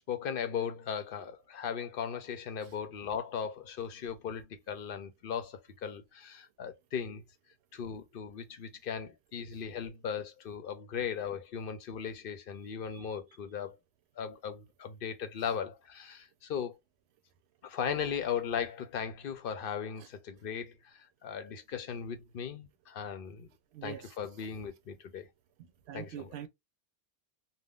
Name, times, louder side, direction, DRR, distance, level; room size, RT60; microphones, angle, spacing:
voice 1, 0.1-7.2 7.7-13.8 14.2-16.8 17.6-23.5 23.8-25.3 25.9-26.3, left 7 dB, 65° left, 0.7 m, -37 dB
voice 2, 23.7-24.1 25.9-26.5, right 10 dB, 90° right, 0.8 m, -43 dB
3.5 x 2.2 x 2.3 m
omnidirectional pair, 1.1 m